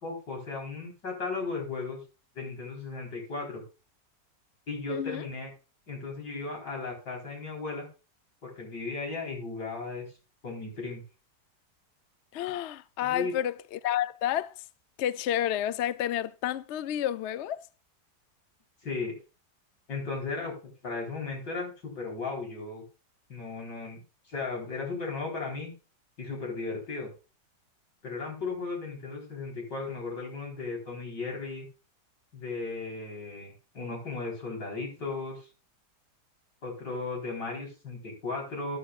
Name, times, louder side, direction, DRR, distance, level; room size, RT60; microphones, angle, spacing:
voice 1, 0.0-2.0 2.3-3.6 4.7-5.5 5.9-7.9 8.4-10.1 10.4-11.0 13.0-13.3 18.8-19.2 19.9-20.5 20.8-22.8 23.3-24.0 24.3-25.7 26.2-27.1 28.0-31.7 32.3-35.5 36.6-38.8, left 3 dB, 90° left, 4.8 m, -36 dB
voice 2, 4.9-5.3 12.3-14.6 15.0-17.6, left 11 dB, 70° left, 0.6 m, -30 dB
13.5 x 9.9 x 2.4 m
omnidirectional pair, 1.8 m